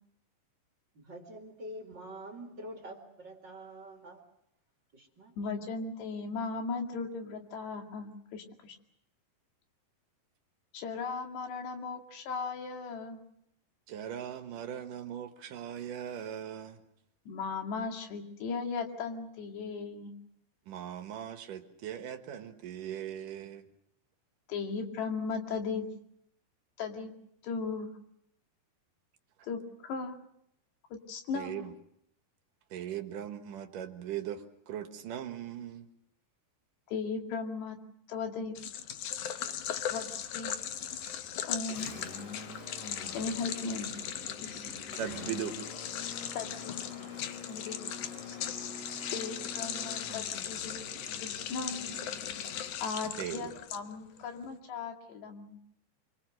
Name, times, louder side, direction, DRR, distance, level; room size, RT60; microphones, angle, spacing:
voice 1, 0.9-4.2 4.9-5.3, right 1 dB, 35° right, 2 dB, 2.2 m, -46 dB
voice 2, 5.4-8.8 10.7-13.2 17.3-20.1 24.5-25.9 26.8-27.1 27.4-27.9 29.4-30.2 31.1-31.8 36.9-37.8 38.1-38.6 39.9-40.5 41.4-41.9 43.1-43.9 44.4-44.7 46.3-46.9 47.5-47.9 48.3-48.5 49.1-50.9 51.2-52.0 52.8-55.6, left 4 dB, 70° left, 3 dB, 4.3 m, -37 dB
voice 3, 13.9-16.8 20.7-23.6 31.3-31.7 32.7-35.9 45.0-45.6 53.2-53.5, right 10 dB, 60° right, 6 dB, 2.4 m, -39 dB
sound 1, 38.6-54.2, left 9 dB, 90° left, 1.7 m, -38 dB
Engine, 39.6-53.6, left 4 dB, 45° left, 4.5 m, -46 dB
26.5 x 24.0 x 6.5 m, 0.75 s
omnidirectional pair, 5.2 m